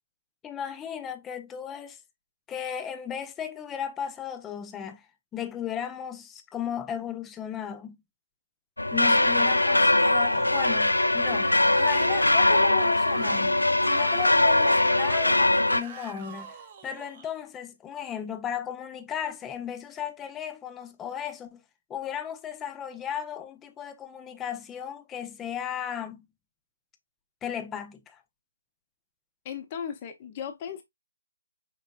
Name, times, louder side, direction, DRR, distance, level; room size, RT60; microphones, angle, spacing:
voice 1, 0.4-2.0 2.5-5.1 5.3-8.0 8.9-16.6 16.8-21.6 21.9-26.2 27.4-28.2, left 8 dB, 10° left, 0.5 m, -35 dB
sound 1, 8.8-15.8, left 2 dB, 80° left, 0.4 m, -22 dB
Yell / Screaming, 9.0-17.3, right 6 dB, 30° right, 0.7 m, -45 dB
voice 2, 29.4-30.8, left 8 dB, 25° left, 0.9 m, -36 dB
5.0 x 3.9 x 2.3 m
figure-of-eight pair, 145°, 0 cm